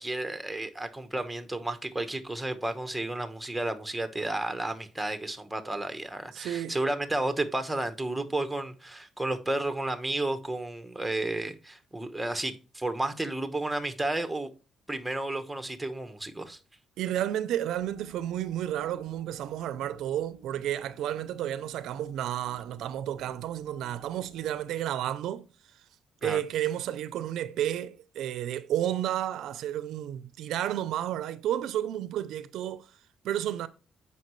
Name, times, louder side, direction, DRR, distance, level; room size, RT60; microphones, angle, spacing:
voice 1, 0.0-14.5 14.9-16.6 26.2-26.4, right 2 dB, 5° right, 1.1 m, -32 dB
voice 2, 6.3-6.8 17.0-25.5 25.7-25.8 26.2-32.9 33.2-33.7, right 11 dB, 80° right, 0.5 m, -31 dB
sound 1, 17.7-24.6, equal, 75° left, 4.0 m, -56 dB
7.5 x 5.6 x 3.1 m
cardioid pair, 90°, 0 cm